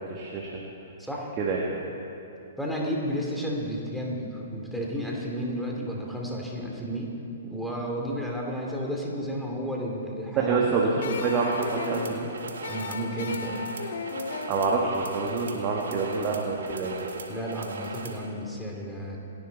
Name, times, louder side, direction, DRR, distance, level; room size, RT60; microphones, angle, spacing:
voice 1, 0.1-0.6 1.4-1.6 10.4-12.3 14.5-16.9, right 4 dB, 30° right, -3 dB, 1.8 m, -27 dB
voice 2, 1.0-1.4 2.6-7.1 7.4-11.0 12.7-13.6 17.3-19.2, equal, ahead, -2 dB, 2.8 m, -32 dB
sound 1, 11.0-16.1, left 5 dB, 60° left, 0.9 m, -37 dB
sound 2, 11.4-18.3, right 4 dB, 70° right, 1.7 m, -39 dB
27.5 x 11.5 x 4.1 m, 2.8 s
figure-of-eight pair, 115°, 0 cm